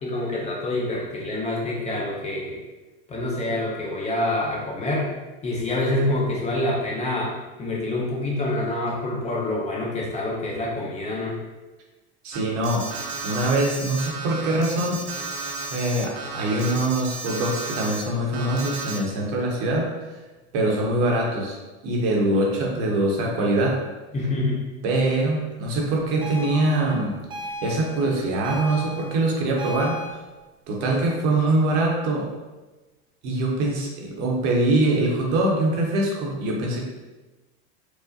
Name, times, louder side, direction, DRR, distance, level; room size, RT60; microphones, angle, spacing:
voice 1, 0.0-2.6 3.1-5.1 5.4-7.3 7.6-11.4 24.1-24.6, left 2 dB, 20° left, -3 dB, 0.6 m, -26 dB
voice 2, 12.2-15.4 15.7-19.9 20.5-21.6 21.8-23.8 24.8-27.2 27.6-30.0 30.7-32.3 33.2-36.8, right 2 dB, 55° right, -1 dB, 0.9 m, -23 dB
Alarm, 12.3-18.0 18.3-19.0, right 4 dB, 80° right, 0.9 m, -33 dB
sound 1, 26.2-30.1, equal, 15° right, 0.7 m, -36 dB
4.7 x 2.1 x 2.7 m, 1.2 s
supercardioid pair, 130°, 32 cm